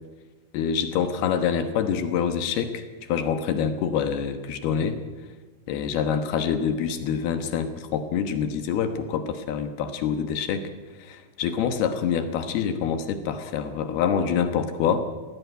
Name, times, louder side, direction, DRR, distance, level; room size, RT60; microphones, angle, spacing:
voice 1, 0.5-2.8 3.1-5.0 5.7-10.7 11.1-15.1, left 7 dB, 70° left, 8 dB, 3.0 m, -26 dB
18.5 x 16.0 x 9.3 m, 1.3 s
omnidirectional pair, 5.0 m